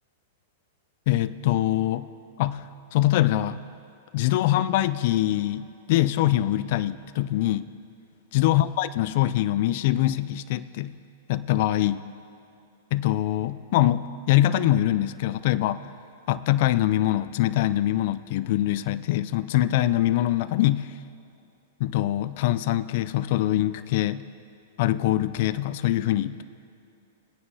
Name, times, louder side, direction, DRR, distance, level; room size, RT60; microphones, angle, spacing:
voice 1, 1.1-2.1 2.4-2.7 2.9-3.6 4.1-7.7 8.3-10.9 11.3-12.0 12.9-15.8 16.3-20.9 21.8-24.2 24.8-26.4, left 14 dB, 55° left, 13 dB, 0.3 m, -23 dB
19.5 x 9.5 x 2.8 m, 2.5 s
hypercardioid pair, 115°, 0 cm